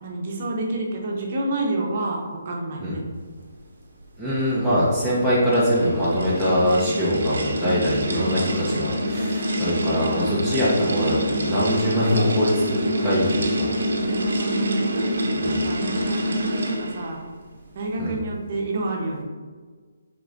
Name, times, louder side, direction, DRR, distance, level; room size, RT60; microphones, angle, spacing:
voice 1, 0.0-3.0 8.1-9.1 14.0-15.1 15.4-17.2 17.7-19.2, right 2 dB, 45° right, -1 dB, 0.8 m, -29 dB
voice 2, 4.2-13.7 14.0-14.1 15.4-15.7 18.0-18.2, equal, 5° left, -11 dB, 0.8 m, -23 dB
sound 1, 5.0-17.1, equal, 75° right, 0.7 m, -26 dB
4.8 x 3.7 x 2.5 m, 1.5 s
hypercardioid pair, 160°, 0 cm